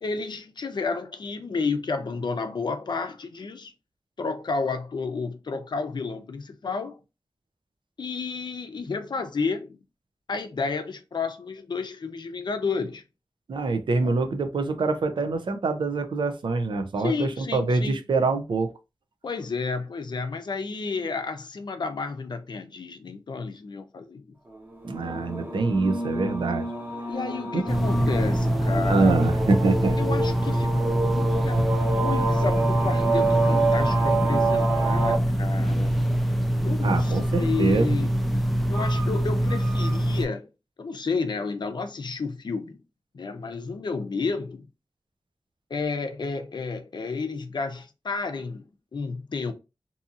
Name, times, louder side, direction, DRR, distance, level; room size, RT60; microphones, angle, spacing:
voice 1, 0.0-3.7 4.2-7.0 8.0-9.8 10.3-13.0 14.0-14.1 17.0-18.0 19.2-24.3 25.1-25.3 27.1-29.1 30.0-31.6 32.0-36.0 36.6-38.2 38.7-40.5 40.8-42.8 43.1-44.7 45.7-48.6 48.9-49.5, left 4 dB, 65° left, 0.5 m, -31 dB
voice 2, 13.5-18.7 24.8-26.7 27.5-27.6 28.9-30.0 36.8-38.0, right 3 dB, 90° right, 0.5 m, -25 dB
sound 1, 24.8-35.2, right 3 dB, 20° right, 0.8 m, -28 dB
sound 2, 27.7-40.3, equal, ahead, 0.4 m, -24 dB
2.7 x 2.6 x 2.4 m
wide cardioid pair, 95°, 8 cm